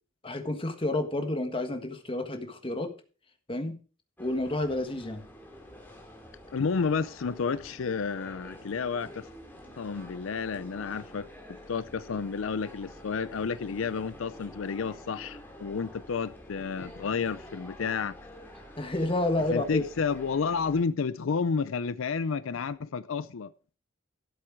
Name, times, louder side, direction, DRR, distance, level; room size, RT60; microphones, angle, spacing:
voice 1, 0.2-2.9 3.5-3.8 4.2-5.2 18.8-19.8, left 2 dB, 25° left, 1.5 m, -30 dB
sound 1, 4.2-20.8, equal, 10° left, 2.5 m, -48 dB
voice 2, 6.5-9.3 9.8-11.3 11.7-18.2 19.5-23.5, left 5 dB, 85° left, 0.5 m, -31 dB
12.5 x 7.7 x 4.7 m
head